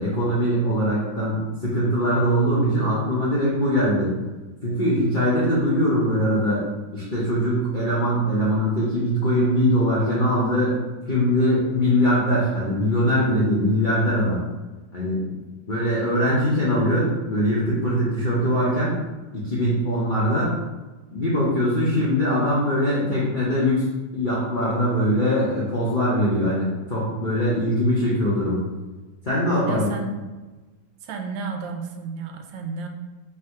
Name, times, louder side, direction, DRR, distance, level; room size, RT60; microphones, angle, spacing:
voice 1, 0.0-4.1 4.6-6.6 6.9-10.7 11.1-14.4 14.9-15.4 15.7-19.0 19.3-20.5 21.1-23.8 24.1-28.6 29.2-29.9, equal, 55° left, -8 dB, 0.5 m, -22 dB
voice 2, 29.6-30.1 31.0-32.9, right 3 dB, 75° right, 4 dB, 1.3 m, -32 dB
3.6 x 2.7 x 4.5 m, 1.2 s
omnidirectional pair, 2.1 m